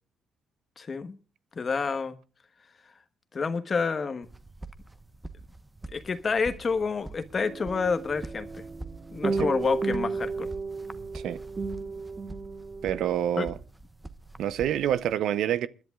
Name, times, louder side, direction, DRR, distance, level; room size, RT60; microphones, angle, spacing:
voice 1, 0.8-1.2 1.5-2.1 3.3-4.3 5.9-8.6 9.1-10.5 13.4-13.5, left 5 dB, 40° left, 1.3 m, -28 dB
sound 1, 4.2-15.1, right 2 dB, 10° right, 1.0 m, -45 dB
sound 2, 7.4-13.1, right 4 dB, 30° right, 1.3 m, -33 dB
voice 2, 12.8-13.6 14.4-15.7, right 10 dB, 80° right, 0.7 m, -27 dB
29.0 x 10.5 x 2.4 m
cardioid pair, 90°, 0 cm